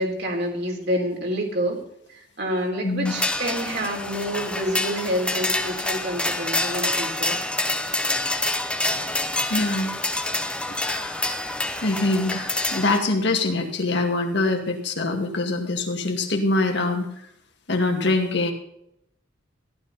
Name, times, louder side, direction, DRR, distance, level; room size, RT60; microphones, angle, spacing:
voice 1, 0.0-1.8 2.1-7.4, equal, 55° right, 1 dB, 3.8 m, -28 dB
sound 1, 3.0-13.0, left 2 dB, 5° left, 1.1 m, -27 dB
voice 2, 9.5-9.9 10.8-17.1 17.7-18.5, left 2 dB, 60° left, 3 dB, 2.2 m, -24 dB
15.0 x 12.0 x 4.2 m, 0.75 s
head